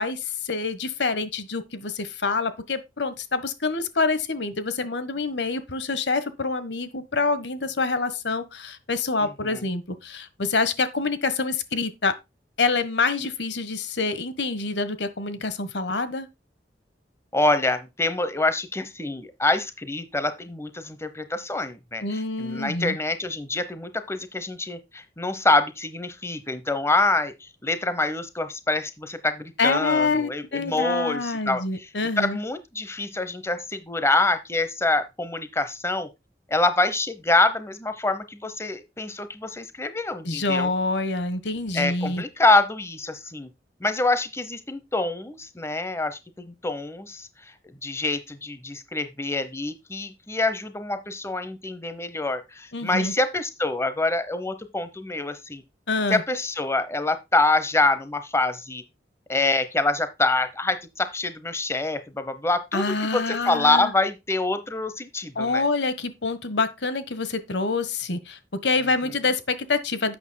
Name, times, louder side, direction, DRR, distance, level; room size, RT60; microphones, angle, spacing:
voice 1, 0.0-12.1 12.6-16.3 22.0-23.0 29.6-32.4 40.2-42.2 52.7-53.1 55.9-56.2 62.7-63.9 65.4-70.2, left 3 dB, 80° left, 1.4 m, -26 dB
voice 2, 9.2-9.6 17.3-31.9 32.2-36.1 36.5-40.7 41.7-43.5 43.8-47.3 47.8-55.6 56.1-58.8 59.3-65.6 69.0-69.1, left 2 dB, 15° left, 0.9 m, -26 dB
11.5 x 8.6 x 2.2 m
head